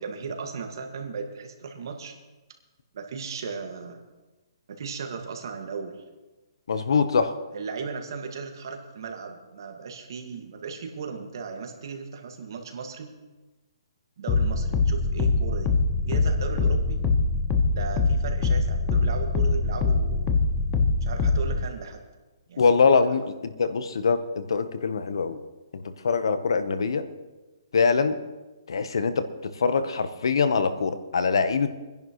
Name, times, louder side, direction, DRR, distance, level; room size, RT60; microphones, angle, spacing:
voice 1, 0.0-2.1 2.9-4.0 4.7-6.0 7.5-13.1 14.2-15.7 16.0-17.0 17.7-20.3 21.0-22.0 22.5-22.7 23.0-23.1, right 5 dB, 60° right, 4 dB, 1.9 m, -36 dB
voice 2, 6.7-7.3 22.6-25.4 25.7-27.1 27.7-28.2 28.7-29.3 29.6-31.7, left 5 dB, 75° left, 11 dB, 1.1 m, -23 dB
sound 1, 14.3-21.7, left 3 dB, 20° left, 0.9 m, -23 dB
23.5 x 10.5 x 3.1 m, 1.2 s
hypercardioid pair, 160°, 2 cm